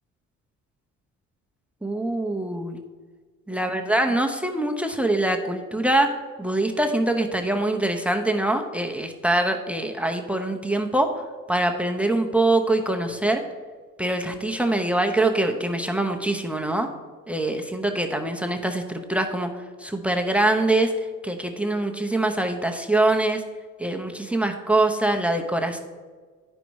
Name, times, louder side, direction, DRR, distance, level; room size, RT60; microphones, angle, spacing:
voice 1, 1.8-2.8 3.5-11.1 11.5-13.4 14.0-16.9 17.3-19.5 19.8-20.9 21.2-23.4 23.8-25.8, right 2 dB, 5° right, 5 dB, 0.8 m, -24 dB
9.8 x 5.4 x 4.7 m, 1.5 s
cardioid pair, 90°, 30 cm